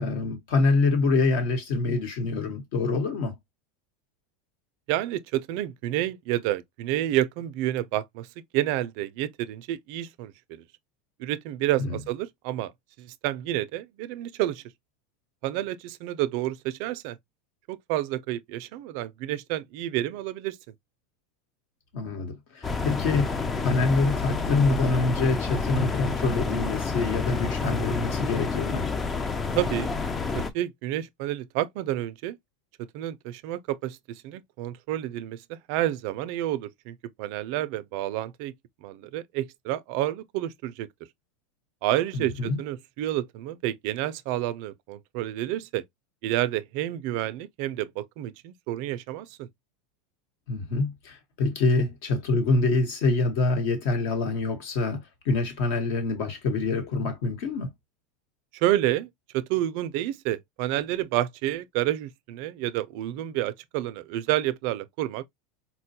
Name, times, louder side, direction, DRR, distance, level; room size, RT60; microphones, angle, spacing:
voice 1, 0.0-3.4 11.8-12.0 21.9-23.4 23.6-28.9 42.1-42.6 50.5-57.7, left 3 dB, 60° left, 1.1 m, -26 dB
voice 2, 4.9-8.3 8.5-10.6 11.2-12.7 13.0-14.6 15.4-17.2 17.7-20.6 29.6-29.9 30.3-32.4 32.9-38.5 38.8-40.9 41.8-45.8 46.2-49.5 58.5-65.3, right 14 dB, 55° right, 0.3 m, -29 dB
sound 1, 22.6-30.5, left 4 dB, 15° left, 0.4 m, -29 dB
4.2 x 2.2 x 2.7 m
supercardioid pair, 150°, 0 cm